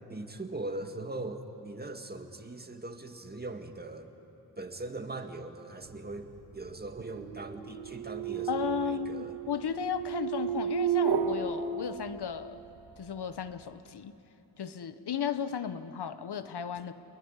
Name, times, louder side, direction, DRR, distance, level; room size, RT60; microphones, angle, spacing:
voice 1, 0.1-4.1 4.6-6.3 6.5-9.3, right 2 dB, 25° right, 5 dB, 2.0 m, -40 dB
sound 1, 6.2-12.7, right 8 dB, 75° right, 1.8 m, -33 dB
voice 2, 8.5-12.6 13.0-14.1 14.6-16.9, left 8 dB, 70° left, 12 dB, 1.2 m, -35 dB
27.5 x 21.0 x 10.0 m, 2.9 s
cardioid pair, 75°, 40 cm